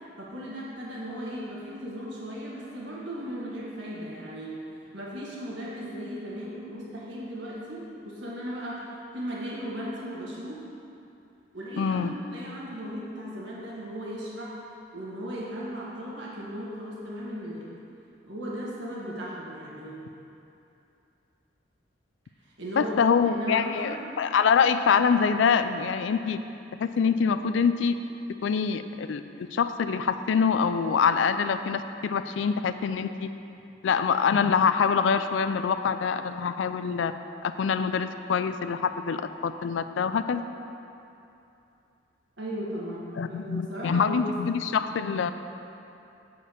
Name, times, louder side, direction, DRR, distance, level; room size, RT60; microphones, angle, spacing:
voice 1, 0.2-4.6 4.9-8.9 9.1-10.6 11.5-14.5 14.9-17.7 18.2-20.0 22.6-23.0 23.3-24.0 42.4-44.3, equal, 75° right, -6 dB, 1.9 m, -36 dB
voice 2, 11.8-12.1 22.8-26.4 26.8-28.0 28.4-33.3 33.8-37.1 37.4-40.4 43.2-45.3, left 6 dB, 80° left, 10 dB, 0.4 m, -25 dB
7.3 x 4.5 x 6.7 m, 2.8 s
head